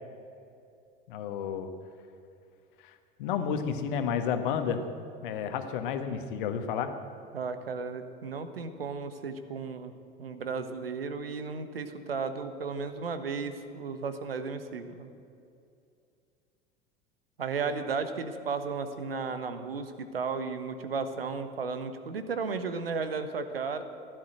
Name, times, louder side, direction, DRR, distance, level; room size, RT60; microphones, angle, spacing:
voice 1, 1.1-1.7 2.8-2.9 3.2-4.8 5.2-6.9, left 7 dB, 60° left, 8 dB, 1.5 m, -31 dB
voice 2, 7.3-9.9 10.2-15.1 17.4-23.8, right 4 dB, 75° right, 10 dB, 1.2 m, -34 dB
15.5 x 11.5 x 7.9 m, 2.5 s
figure-of-eight pair, 75°, 29 cm